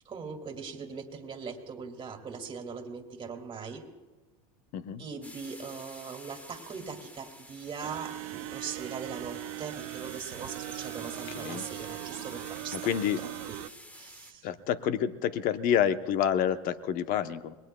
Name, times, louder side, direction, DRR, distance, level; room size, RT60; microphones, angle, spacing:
voice 1, 0.1-3.8 5.0-12.9 13.2-13.5 13.9-14.5, right 5 dB, 30° right, 4 dB, 2.3 m, -40 dB
sound 1, 5.2-14.3, equal, 10° left, 1.3 m, -49 dB
sound 2, 7.8-13.7, right 20 dB, 70° right, 0.4 m, -40 dB
voice 2, 12.7-13.2 14.4-17.5, left 9 dB, 50° left, 11 dB, 0.9 m, -28 dB
27.5 x 20.5 x 2.3 m, 1.3 s
supercardioid pair, 110°, 18 cm